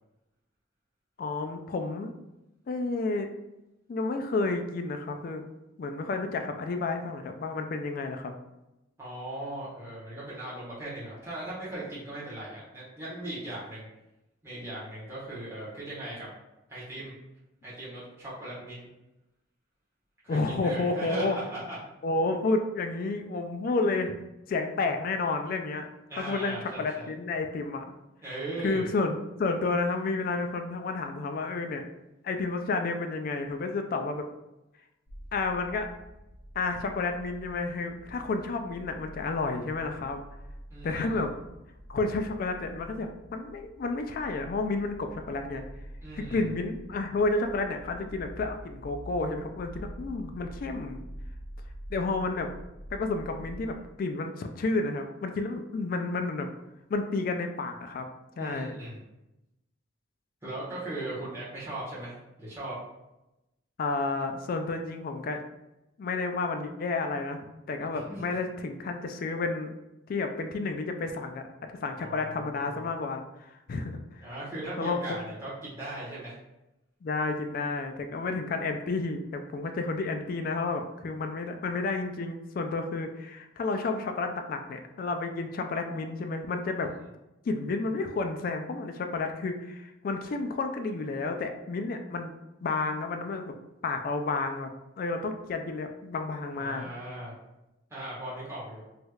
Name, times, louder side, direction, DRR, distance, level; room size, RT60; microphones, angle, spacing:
voice 1, 1.2-2.1 2.7-3.3 3.9-5.4 5.8-8.3 20.3-21.4 22.0-24.2 24.5-25.9 26.2-27.9 28.6-31.9 32.2-34.3 35.3-35.9 36.6-40.2 40.8-41.3 41.9-45.6 46.2-51.0 51.9-52.5 52.9-56.5 56.9-58.1 58.4-58.7 63.8-65.4 66.0-69.7 70.1-71.5 71.8-74.3 74.8-75.0 77.0-86.9 87.5-92.3 92.6-93.5 93.8-94.7 95.0-96.9, left 3 dB, 50° left, 5 dB, 0.3 m, -31 dB
voice 2, 9.0-13.9 14.4-16.3 16.7-17.1 17.6-18.9 20.2-21.8 26.1-27.1 28.2-28.9 40.7-41.2 46.0-46.4 58.4-59.0 60.4-62.8 67.9-68.4 72.0-72.8 74.2-76.3 96.6-97.3 97.9-98.8, right 1 dB, 15° right, -10 dB, 1.2 m, -38 dB
sound 1, 35.1-53.7, equal, 75° left, 0.8 m, -46 dB
3.2 x 3.0 x 2.3 m, 0.94 s
head